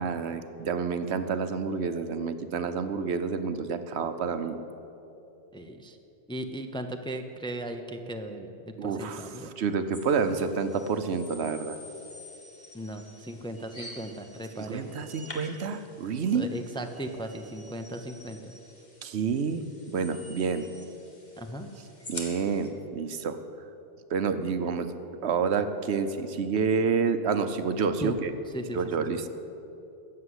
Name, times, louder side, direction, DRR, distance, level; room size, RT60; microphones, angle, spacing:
voice 1, 0.0-4.6 8.8-9.2 9.6-11.8 14.6-16.5 19.0-19.6 19.9-20.7 22.1-23.4 24.1-24.9 25.2-28.3 28.7-29.3, right 5 dB, 70° right, 10 dB, 1.0 m, -28 dB
voice 2, 5.5-6.0 6.3-9.5 12.7-14.9 16.3-18.5 21.4-21.7 28.0-28.2 28.5-28.8 29.1-29.2, right 1 dB, 5° left, 5 dB, 0.6 m, -37 dB
sound 1, 9.9-22.7, left 2 dB, 40° left, 1.9 m, -48 dB
14.0 x 7.7 x 9.7 m, 3.0 s
omnidirectional pair, 1.2 m